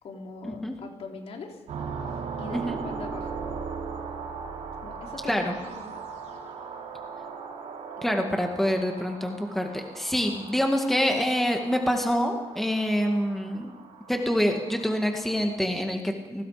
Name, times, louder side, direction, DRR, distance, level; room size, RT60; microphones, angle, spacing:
voice 1, 0.0-1.6 2.4-3.4 4.8-6.0 8.0-8.1, left 3 dB, 55° left, 2 dB, 3.5 m, -41 dB
sound 1, 1.7-15.5, right 5 dB, 80° right, 4.0 m, -39 dB
voice 2, 8.0-13.8 14.1-16.4, equal, ahead, 3 dB, 2.0 m, -26 dB
30.0 x 19.0 x 5.1 m, 1.2 s
cardioid pair, 135°, 12 cm